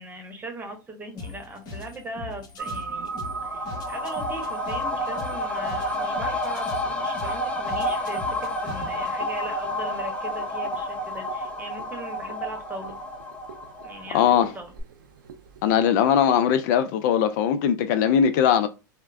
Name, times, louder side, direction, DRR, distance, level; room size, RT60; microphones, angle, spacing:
voice 1, 0.0-3.1 3.4-13.0 13.8-14.7, right 2 dB, 15° right, 1.0 m, -39 dB
sound 1, 1.2-9.2, left 4 dB, 45° left, 1.1 m, -41 dB
sound 2, 2.6-15.8, right 5 dB, 80° right, 0.5 m, -41 dB
sound 3, 3.0-14.5 14.8-14.9, left 1 dB, 10° left, 0.6 m, -30 dB
voice 2, 14.1-14.5 15.6-18.7, left 8 dB, 60° left, 0.4 m, -20 dB
4.3 x 2.1 x 2.4 m
hypercardioid pair, 105°, 11 cm